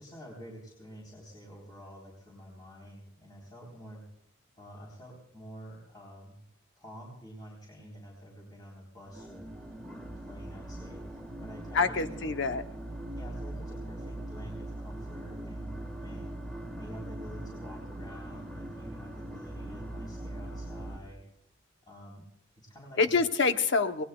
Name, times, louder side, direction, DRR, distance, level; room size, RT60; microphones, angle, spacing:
voice 1, 0.0-4.1 4.6-6.4 6.8-9.5 9.9-12.3 13.2-16.3 16.8-21.2 21.8-22.3 22.5-23.2, equal, 20° left, -3 dB, 3.8 m, -48 dB
sound 1, 9.1-21.0, right 1 dB, 5° left, 1.6 m, -41 dB
voice 2, 11.7-12.6 23.0-24.0, left 4 dB, 55° left, 8 dB, 0.9 m, -26 dB
26.0 x 19.0 x 2.3 m, 0.76 s
head